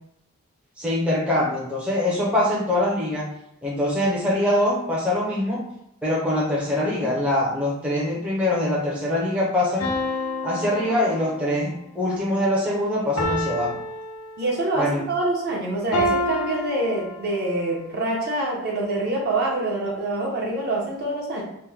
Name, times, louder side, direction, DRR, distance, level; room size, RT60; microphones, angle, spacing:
voice 1, 0.8-3.3 3.6-5.7 6.0-9.9 10.4-13.8 14.8-15.0, left 1 dB, 5° right, -6 dB, 0.5 m, -23 dB
sound 1, 9.8-11.7 13.2-14.8 15.9-17.6, left 1 dB, 85° left, 0.7 m, -28 dB
voice 2, 14.4-21.4, right 2 dB, 45° right, -2 dB, 0.7 m, -25 dB
2.9 x 2.1 x 3.4 m, 0.82 s
head